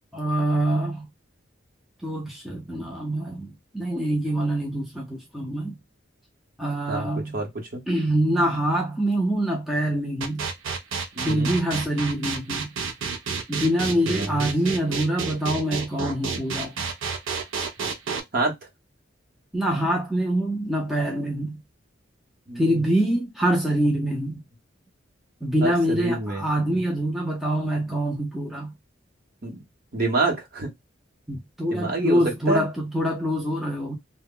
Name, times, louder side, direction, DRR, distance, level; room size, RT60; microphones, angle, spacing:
voice 1, 0.1-1.1 2.0-5.8 6.6-7.4 7.9-10.5 11.2-12.7 13.5-16.8 19.5-21.6 22.6-24.4 25.4-28.7 31.3-34.0, right 1 dB, ahead, 0.5 m, -25 dB
voice 2, 7.3-7.8 11.2-11.5 14.0-14.4 17.8-17.9 18.3-18.5 22.5-22.6 25.6-26.8 29.4-29.6 29.9-30.7 31.7-32.2 32.5-32.7, right 3 dB, 50° right, 0.8 m, -27 dB
sound 1, 10.2-18.2, right 5 dB, 80° right, 0.4 m, -30 dB
2.1 x 2.0 x 3.6 m
head